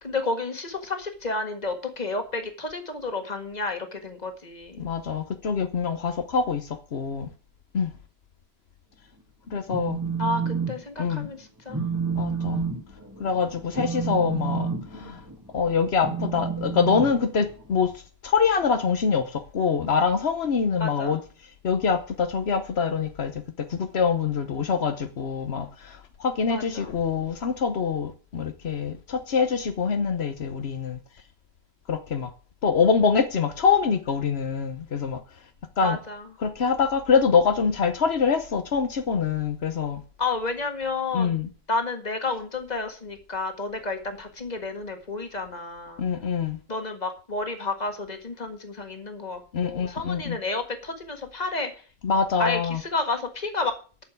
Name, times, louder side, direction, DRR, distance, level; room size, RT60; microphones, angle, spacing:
voice 1, 0.0-4.9 10.2-11.8 20.8-21.1 26.5-26.9 35.8-36.2 40.2-41.4 41.7-46.0 46.7-51.7 52.4-53.7, left 3 dB, 40° left, 1.9 m, -31 dB
voice 2, 4.8-7.3 7.7-7.9 9.5-10.0 11.0-11.3 12.2-12.6 13.2-15.2 15.5-17.9 18.2-21.2 21.6-23.4 23.7-31.0 31.9-32.3 32.6-35.2 35.8-36.0 36.4-40.0 41.1-41.5 46.0-46.6 49.5-50.4 52.0-52.8, left 6 dB, 85° left, 1.2 m, -25 dB
Telephone, 9.5-10.7 11.1-11.3 11.7-17.8, right 5 dB, 20° right, 1.4 m, -30 dB
8.8 x 6.8 x 8.4 m
omnidirectional pair, 1.0 m